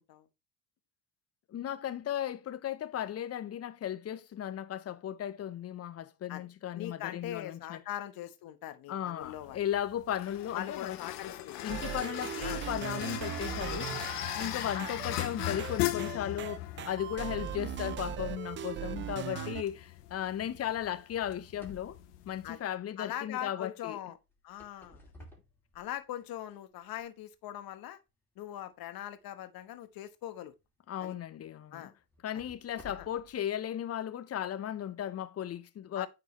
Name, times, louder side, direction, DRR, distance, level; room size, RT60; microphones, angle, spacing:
voice 1, 1.5-7.8 8.9-11.0 11.3-13.9 14.3-22.0 22.3-24.0 30.9-31.9 32.2-36.1, left 10 dB, 30° left, 0.7 m, -36 dB
voice 2, 6.7-9.6 10.5-11.6 12.4-12.6 14.7-14.9 19.3-19.5 22.4-22.6 23.0-24.2 24.4-25.0 25.7-28.0 28.4-30.5 31.0-31.2 31.7-31.9 32.3-32.4 32.9-33.1 35.9-36.1, left 12 dB, 50° left, 1.1 m, -41 dB
sound 1, 9.2-22.6, left 15 dB, 75° left, 0.8 m, -39 dB
sound 2, 11.7-19.6, right 11 dB, 30° right, 0.4 m, -39 dB
sound 3, 21.2-23.2 24.3-26.3 26.9-27.0 27.7-27.8 30.4-30.6 31.1-31.2 32.1-33.4, left 3 dB, 5° left, 2.4 m, -55 dB
9.7 x 3.9 x 3.1 m
hypercardioid pair, 70°, 47 cm